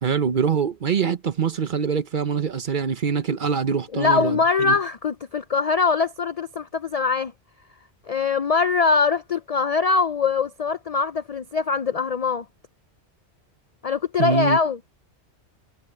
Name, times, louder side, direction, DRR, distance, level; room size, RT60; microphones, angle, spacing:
voice 1, 0.0-4.8 14.2-14.6, right 6 dB, 50° right, 0.9 m, -24 dB
voice 2, 3.9-7.3 8.1-12.4 13.8-14.8, left 5 dB, 55° left, 0.4 m, -22 dB
omnidirectional pair, 1.2 m